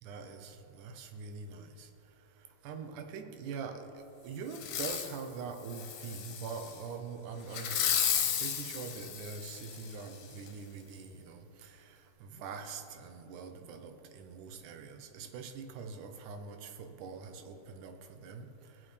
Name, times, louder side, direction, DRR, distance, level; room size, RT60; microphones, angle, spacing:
voice 1, 0.0-1.9 2.4-3.9 4.2-18.9, right 5 dB, 85° right, 6 dB, 2.3 m, -44 dB
Fireworks, 4.5-5.2 5.7-6.7 7.5-9.9 10.5-10.6, left 8 dB, 90° left, 2.4 m, -33 dB
21.0 x 7.7 x 3.3 m, 2.9 s
omnidirectional pair, 3.5 m